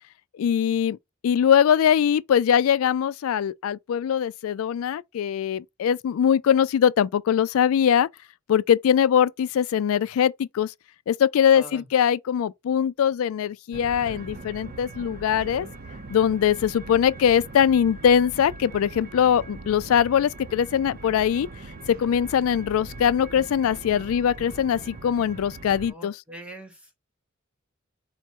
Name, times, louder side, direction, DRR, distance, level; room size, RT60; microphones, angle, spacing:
voice 1, 0.4-1.0 1.2-8.1 8.5-10.7 11.1-15.7 16.1-21.5 22.0-26.1, left 8 dB, 80° left, 0.3 m, -22 dB
voice 2, 11.5-11.9 25.9-27.1, right 1 dB, 5° right, 1.0 m, -43 dB
sound 1, 13.7-25.9, right 3 dB, 45° right, 0.6 m, -41 dB
4.2 x 2.1 x 4.5 m
head